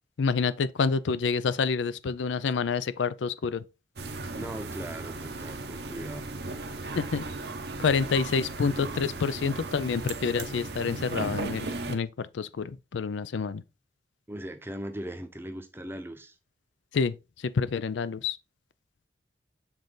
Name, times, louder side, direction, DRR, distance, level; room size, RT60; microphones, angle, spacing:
voice 1, 0.2-3.6 6.9-7.2 7.8-13.6 16.9-18.4, left 5 dB, 85° left, 0.4 m, -28 dB
sound 1, 4.0-11.9, right 3 dB, 60° right, 0.9 m, -36 dB
voice 2, 4.4-6.3 7.7-7.8 14.3-16.3, right 1 dB, 10° right, 0.7 m, -39 dB
7.1 x 3.8 x 3.9 m
head